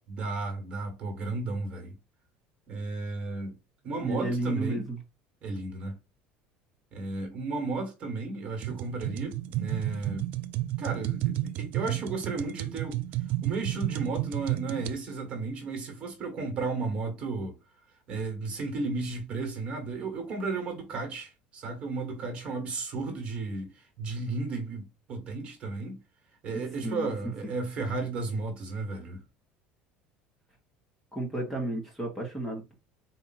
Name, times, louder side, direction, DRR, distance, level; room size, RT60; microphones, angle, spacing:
voice 1, 0.1-2.0 2.7-3.5 3.8-4.9 5.4-6.0 6.9-10.3 10.8-13.0 13.4-17.6 18.1-26.0 26.4-29.2, right 3 dB, 35° right, 1.6 m, -34 dB
voice 2, 4.0-5.0 26.8-27.1 31.1-32.7, right 1 dB, 5° left, 1.2 m, -32 dB
sound 1, 8.6-15.0, right 15 dB, 55° right, 0.4 m, -32 dB
4.3 x 2.7 x 4.2 m
cardioid pair, 160°, 3 cm